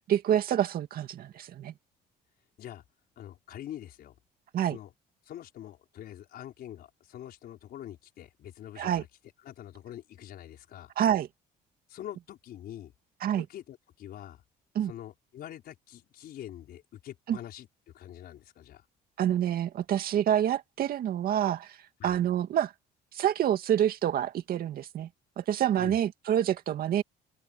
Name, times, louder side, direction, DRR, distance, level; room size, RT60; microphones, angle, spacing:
voice 1, 0.1-1.7 4.5-4.8 8.8-9.0 11.0-11.3 13.2-13.4 14.7-14.9 17.3-17.4 19.2-21.8 22.0-22.7 23.1-25.1 25.4-27.0, right 10 dB, 60° right, 2.2 m, -27 dB
voice 2, 3.2-4.2 4.7-4.9 5.2-9.1 9.4-10.9 11.9-12.9 13.4-14.4 14.8-17.7 17.9-18.9 22.0-22.2 25.8-26.0, left 11 dB, 65° left, 5.1 m, -45 dB
open air
cardioid pair, 110°, 17 cm